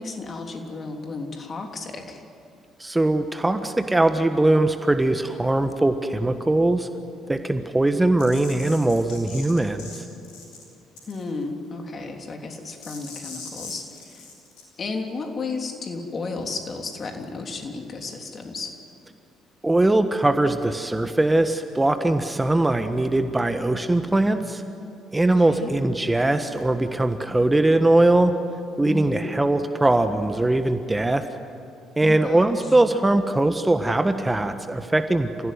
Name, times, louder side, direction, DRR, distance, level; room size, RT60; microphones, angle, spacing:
voice 1, 0.0-2.2 11.0-14.3 14.8-18.8 25.2-25.7 28.8-29.4 32.0-32.7, left 3 dB, 40° left, 3 dB, 3.4 m, -33 dB
voice 2, 2.8-6.9 7.3-10.0 19.6-24.6 25.1-28.3 28.8-31.2 32.0-35.5, right 2 dB, 15° right, 8 dB, 1.5 m, -21 dB
sound 1, 8.2-10.0 10.2-10.6 11.0-11.4 12.8-14.6, left 4 dB, 70° left, 5.8 m, -40 dB
29.0 x 16.0 x 9.6 m, 2.7 s
hypercardioid pair, 50°, 0 cm